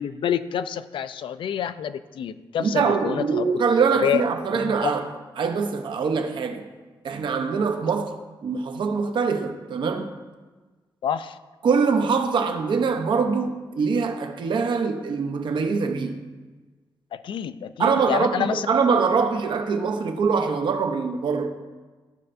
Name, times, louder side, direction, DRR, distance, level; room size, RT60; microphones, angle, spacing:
voice 1, 0.0-3.5 4.0-4.2 4.5-4.7 11.0-11.4 17.1-18.7, left 9 dB, 75° left, 0.3 m, -28 dB
voice 2, 2.6-5.0 5.4-6.7 7.0-8.1 8.4-10.1 11.6-16.2 17.8-21.6, right 5 dB, 65° right, 0.7 m, -23 dB
14.0 x 5.4 x 2.6 m
wide cardioid pair, 160°, 9 cm